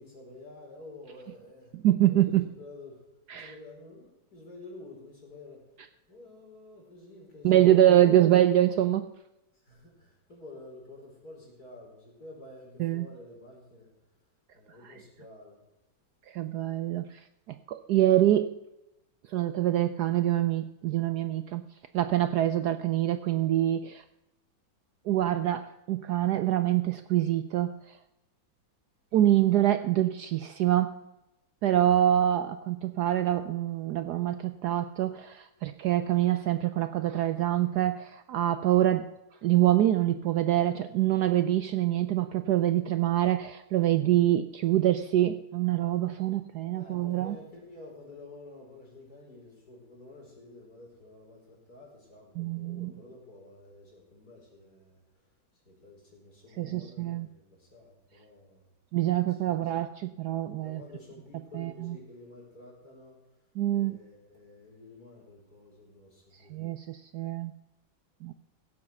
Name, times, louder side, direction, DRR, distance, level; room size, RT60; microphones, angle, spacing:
voice 1, 0.0-1.7 2.1-3.0 3.3-5.6 6.1-8.3 9.5-13.9 14.5-15.6 46.7-55.3 55.6-58.7 59.3-59.7 60.6-66.7, left 2 dB, 50° left, -2 dB, 5.1 m, -50 dB
voice 2, 1.8-2.5 3.3-3.5 7.4-9.1 12.8-13.1 16.3-17.2 17.5-18.6 19.3-21.6 21.9-24.0 25.1-27.7 29.1-31.0 31.6-39.1 39.4-47.3 52.4-52.9 56.6-57.3 58.9-60.8 61.5-61.9 63.6-63.9 66.5-67.5 68.2-68.3, right 12 dB, 70° right, 10 dB, 1.0 m, -25 dB
17.0 x 7.6 x 5.9 m, 0.94 s
omnidirectional pair, 2.1 m